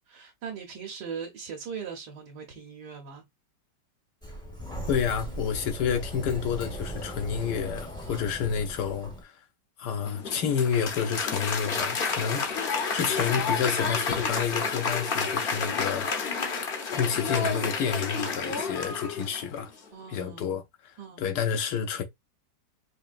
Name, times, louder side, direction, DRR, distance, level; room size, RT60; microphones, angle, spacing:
voice 1, 0.1-3.2 8.0-8.5 19.9-20.6 21.0-21.3, right 6 dB, 75° right, 1.5 m, -40 dB
Sliding door, 4.2-9.2, equal, 5° left, 0.5 m, -38 dB
voice 2, 4.9-9.3 9.8-16.1 16.9-19.7 20.1-22.0, left 7 dB, 80° left, 1.3 m, -29 dB
Applause, 10.0-19.6, left 5 dB, 55° left, 0.6 m, -30 dB
4.8 x 2.7 x 2.4 m
omnidirectional pair, 1.8 m